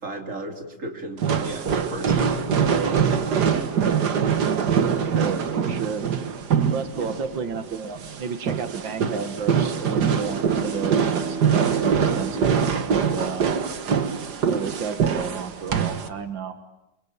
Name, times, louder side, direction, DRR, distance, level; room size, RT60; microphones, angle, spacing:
voice 1, 0.0-2.4 2.8-3.7 6.9-7.1, right 1 dB, 40° right, 3 dB, 3.4 m, -35 dB
sound 1, 1.2-16.1, right 7 dB, 60° right, 2.0 m, -23 dB
voice 2, 5.0-6.1 6.7-12.6 12.9-13.5 14.4-16.6, right 6 dB, 85° right, 8 dB, 2.3 m, -32 dB
Bowed string instrument, 9.5-14.1, right 4 dB, 55° left, 8.8 m, -35 dB
28.5 x 23.5 x 8.8 m, 0.96 s
omnidirectional pair, 2.0 m